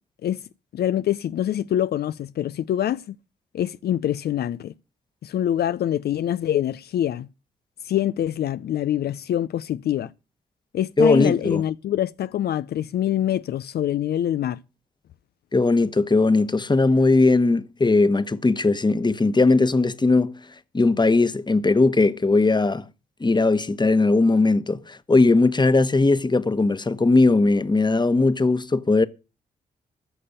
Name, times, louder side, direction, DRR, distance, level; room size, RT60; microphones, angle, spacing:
voice 1, 0.7-3.2 3.5-4.7 5.2-7.3 7.8-10.1 10.7-14.6, left 11 dB, 65° left, 0.5 m, -25 dB
voice 2, 11.0-11.6 15.5-20.3 20.7-22.8 23.2-29.1, left 3 dB, 25° left, 1.3 m, -19 dB
14.0 x 6.8 x 6.8 m
supercardioid pair, 45°, 18 cm